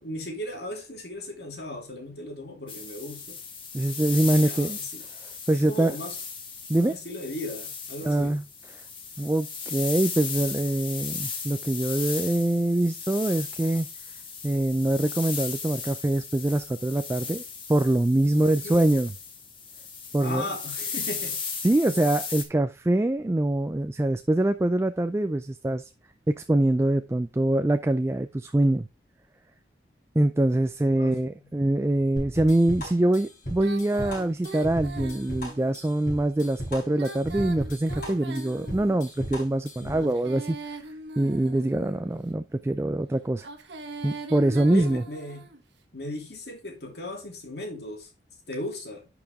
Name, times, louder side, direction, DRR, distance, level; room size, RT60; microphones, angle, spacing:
voice 1, 0.0-3.4 4.3-5.0 5.5-6.2 6.8-8.4 18.3-18.9 20.2-21.4 31.0-31.2 39.8-40.1 44.7-45.5 45.9-48.1 48.5-49.1, left 1 dB, 65° left, 2.7 m, -37 dB
sound 1, 2.7-22.4, left 5 dB, 30° left, 1.6 m, -36 dB
voice 2, 3.7-4.8 5.0-6.0 6.7-6.9 8.0-8.4 9.2-13.9 14.4-17.4 17.7-19.1 20.1-20.4 21.6-25.8 26.3-28.9 30.2-40.9 41.2-43.5 44.0-45.0, right 1 dB, 15° right, 0.3 m, -24 dB
sound 2, 32.2-40.1, equal, 45° left, 4.2 m, -36 dB
Female singing, 33.6-35.7 36.8-39.1 39.9-42.1 43.3-45.6, right 2 dB, 80° right, 1.4 m, -41 dB
10.5 x 4.9 x 3.5 m
head